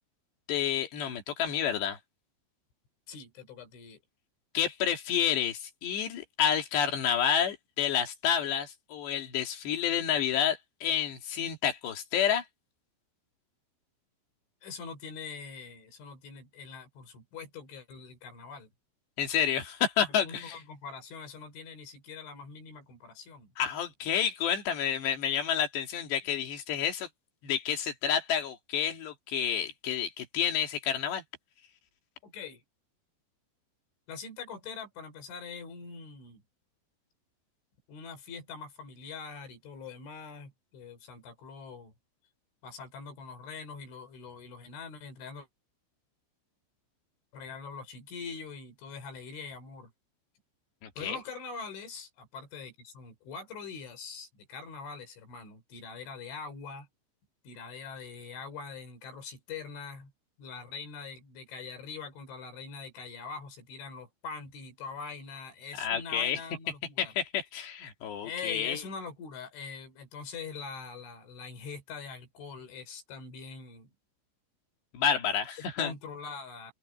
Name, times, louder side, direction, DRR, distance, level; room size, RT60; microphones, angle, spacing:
voice 1, 0.5-2.0 4.5-12.4 19.2-20.6 23.6-27.1 27.4-31.2 50.8-51.2 65.8-66.4 67.0-68.8 74.9-75.9, left 8 dB, 70° left, 4.5 m, -29 dB
voice 2, 3.1-4.0 14.6-18.7 20.0-23.5 26.5-26.6 32.2-32.6 34.1-36.4 37.9-41.9 42.6-45.5 47.3-49.9 51.0-56.9 57.5-60.1 60.4-67.1 68.2-73.9 75.8-76.7, left 5 dB, 90° left, 7.2 m, -43 dB
open air
omnidirectional pair, 5.3 m